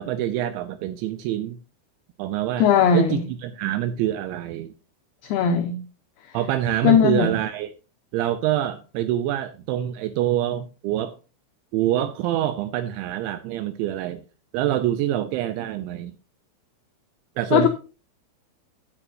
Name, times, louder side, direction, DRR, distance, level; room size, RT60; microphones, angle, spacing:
voice 1, 0.0-1.6 2.2-2.6 2.9-4.7 6.3-7.7 8.1-11.1 11.7-14.2 14.5-16.1 17.4-17.7, right 12 dB, 85° right, 2.7 m, -25 dB
voice 2, 2.6-3.2 5.3-5.8 6.8-7.3 17.5-17.7, left 7 dB, 85° left, 2.2 m, -18 dB
13.0 x 8.7 x 2.7 m
omnidirectional pair, 5.8 m